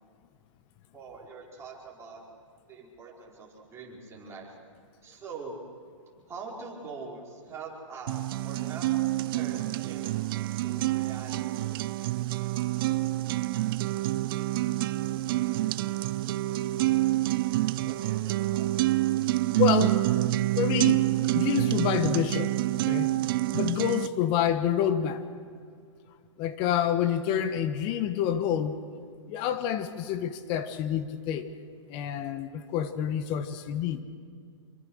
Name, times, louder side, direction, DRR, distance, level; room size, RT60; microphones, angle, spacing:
voice 1, 0.9-2.2 2.7-4.5 5.0-5.6 6.2-8.9 9.3-11.7 17.8-18.8, right 4 dB, 15° right, -4 dB, 5.1 m, -44 dB
sound 1, 8.1-24.1, right 16 dB, 45° right, 0.5 m, -27 dB
voice 2, 19.6-20.0 20.6-21.1 21.3-23.1 23.5-25.2 26.4-28.8 29.3-31.5 31.9-34.0, left 9 dB, 35° left, 11 dB, 1.3 m, -28 dB
25.5 x 24.0 x 6.5 m, 2.2 s
hypercardioid pair, 140°, 16 cm